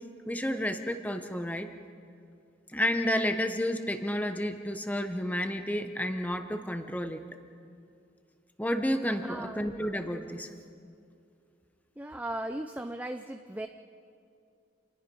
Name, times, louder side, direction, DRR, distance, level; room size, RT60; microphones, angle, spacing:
voice 1, 0.3-1.7 2.7-7.2 8.6-10.5, equal, 10° left, 7 dB, 1.1 m, -31 dB
voice 2, 9.2-9.8 12.0-13.7, right 1 dB, 10° right, 6 dB, 0.5 m, -37 dB
29.0 x 20.0 x 5.5 m, 2.5 s
head